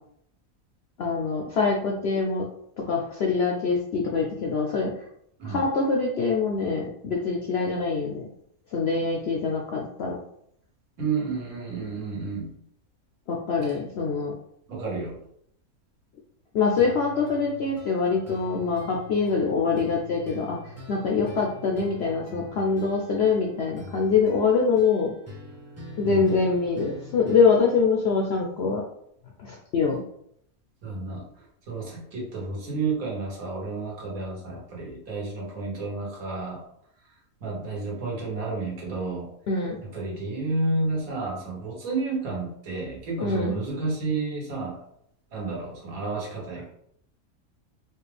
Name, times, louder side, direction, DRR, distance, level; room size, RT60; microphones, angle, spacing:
voice 1, 1.0-2.5 2.8-5.1 5.4-8.3 8.7-10.2 13.3-14.4 16.5-25.1 26.0-28.8 29.4-30.0 39.5-39.8 43.2-43.5, left 4 dB, 70° left, -1 dB, 0.6 m, -24 dB
voice 2, 11.0-12.5 14.7-15.2 26.0-26.3 30.8-31.3 31.7-36.6 37.4-39.3 39.9-44.8 45.3-46.7, right 3 dB, 70° right, -2 dB, 1.5 m, -31 dB
sound 1, 16.8-27.8, left 2 dB, 15° right, 0.7 m, -44 dB
4.3 x 2.3 x 3.3 m, 0.71 s
omnidirectional pair, 1.6 m